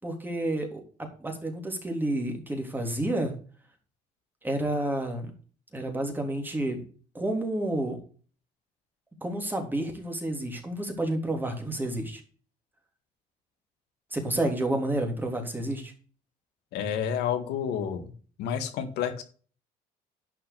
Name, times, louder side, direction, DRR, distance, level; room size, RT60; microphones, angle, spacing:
voice 1, 0.0-0.8 1.2-3.3 4.4-5.3 5.7-6.8 7.1-8.0 9.2-12.2 14.1-15.9, right 1 dB, 10° right, 3 dB, 3.4 m, -30 dB
voice 2, 16.7-18.1 18.4-19.2, left 8 dB, 85° left, 7 dB, 2.0 m, -30 dB
11.0 x 6.0 x 6.9 m, 0.41 s
cardioid pair, 110°, 17 cm